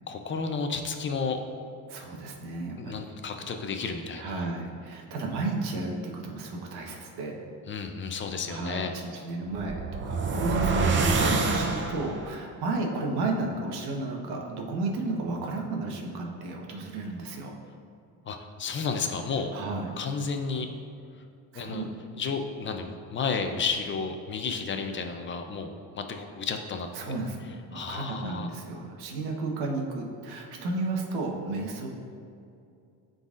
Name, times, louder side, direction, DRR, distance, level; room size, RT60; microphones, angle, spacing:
voice 1, 0.1-1.4 2.8-4.4 7.7-8.9 18.2-19.5 20.0-20.7 21.5-21.8 22.2-27.2 27.7-28.5, left 5 dB, 30° left, 5 dB, 0.5 m, -32 dB
voice 2, 1.9-3.1 4.2-7.4 8.5-17.5 19.5-20.0 21.5-21.9 26.9-31.9, right 3 dB, 75° right, 1 dB, 1.2 m, -33 dB
sound 1, 9.5-12.3, right 3 dB, 30° right, 0.6 m, -26 dB
11.5 x 4.0 x 2.5 m, 2.5 s
cardioid pair, 120°, 39 cm